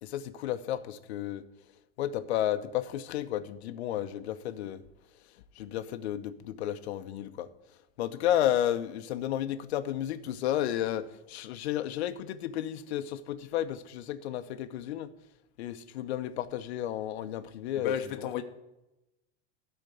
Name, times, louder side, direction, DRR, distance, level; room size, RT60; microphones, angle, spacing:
voice 1, 0.0-1.5 2.0-4.8 5.6-7.5 8.0-15.1 15.6-17.9, left 11 dB, 80° left, 0.9 m, -32 dB
voice 2, 17.8-18.4, left 9 dB, 50° left, 0.9 m, -33 dB
13.0 x 4.5 x 8.2 m
supercardioid pair, 180°, 32 cm